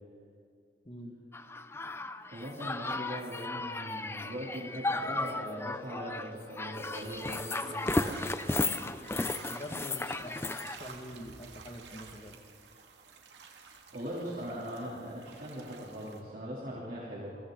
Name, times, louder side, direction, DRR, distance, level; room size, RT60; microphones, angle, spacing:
voice 1, 0.8-1.2 8.8-8.9 9.5-12.4, equal, 30° left, 4 dB, 1.9 m, -45 dB
sound 1, 1.3-10.8, left 2 dB, 15° left, 0.6 m, -35 dB
voice 2, 2.3-8.3 13.3-13.6 13.9-17.3, equal, 50° right, -6 dB, 3.3 m, -40 dB
sound 2, 6.9-16.2, right 5 dB, 80° right, 2.2 m, -51 dB
29.5 x 22.5 x 4.0 m, 2.2 s
head